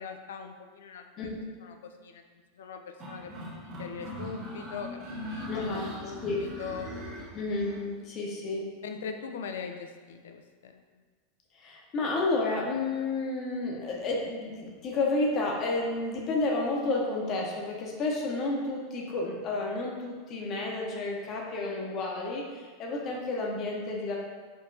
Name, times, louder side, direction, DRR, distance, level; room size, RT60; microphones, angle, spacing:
voice 1, 0.0-1.3 1.6-2.2 2.6-6.9 8.8-10.9, left 6 dB, 65° left, 6 dB, 0.3 m, -41 dB
voice 2, 1.2-1.5 5.5-5.9 6.2-6.4 7.3-8.7 11.5-24.2, left 2 dB, 40° left, -1 dB, 0.8 m, -31 dB
sound 1, 3.0-7.8, left 1 dB, 40° right, 0.8 m, -40 dB
4.5 x 2.8 x 2.6 m, 1.5 s
figure-of-eight pair, 85°, 0 cm